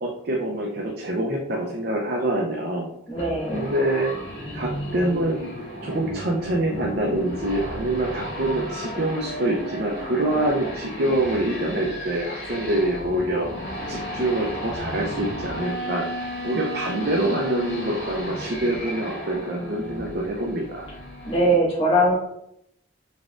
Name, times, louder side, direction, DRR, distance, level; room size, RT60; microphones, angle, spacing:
voice 1, 0.0-2.9 3.5-4.1 4.5-5.4 5.8-13.5 13.9-16.1 16.4-20.9, right 1 dB, 55° right, -1 dB, 0.6 m, -25 dB
sound 1, 3.1-21.5, left 1 dB, 70° left, 1.3 m, -34 dB
voice 2, 3.1-3.7 19.3-20.3 21.2-22.1, right 1 dB, 30° left, -9 dB, 1.5 m, -23 dB
4.0 x 3.6 x 2.4 m, 0.78 s
head